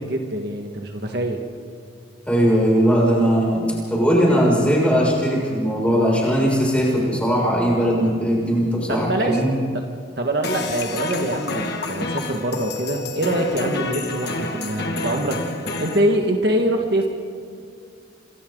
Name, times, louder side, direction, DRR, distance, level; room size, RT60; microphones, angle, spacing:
voice 1, 0.0-1.4 8.9-9.4 9.7-9.8 10.2-15.4 15.8-17.1, right 1 dB, 55° right, 2 dB, 1.9 m, -24 dB
voice 2, 2.3-9.5, equal, 5° left, -4 dB, 6.6 m, -19 dB
sound 1, 10.4-16.0, left 2 dB, 55° left, 2.2 m, -28 dB
28.0 x 26.0 x 4.0 m, 2.4 s
head